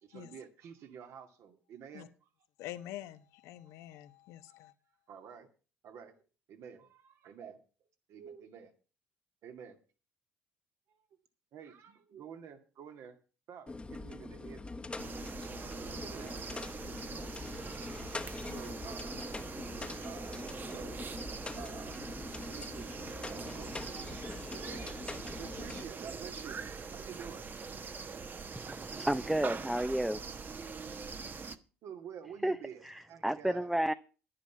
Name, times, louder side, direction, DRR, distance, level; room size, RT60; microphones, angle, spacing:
voice 1, 0.0-2.3 5.1-5.5 5.8-6.2 6.5-7.6 8.1-8.7 9.4-9.8 10.9-11.0 11.5-13.1 13.5-14.6 16.0-16.4 18.5-19.2 19.6-19.7 20.0-21.1 21.6-22.0 22.5-22.9 23.3-24.9 25.4-26.6 26.9-27.4 31.8-33.7, right 7 dB, 65° right, 2.2 m, -49 dB
voice 2, 2.6-4.7, left 13 dB, 75° left, 1.1 m, -46 dB
sound 1, 13.7-25.9, left 3 dB, 20° left, 1.2 m, -43 dB
sound 2, 15.0-31.6, right 5 dB, 40° right, 1.2 m, -43 dB
voice 3, 28.5-30.2 32.4-32.6 32.8-33.9, right 1 dB, 5° right, 0.7 m, -32 dB
11.0 x 10.0 x 5.8 m
hypercardioid pair, 60°, 5 cm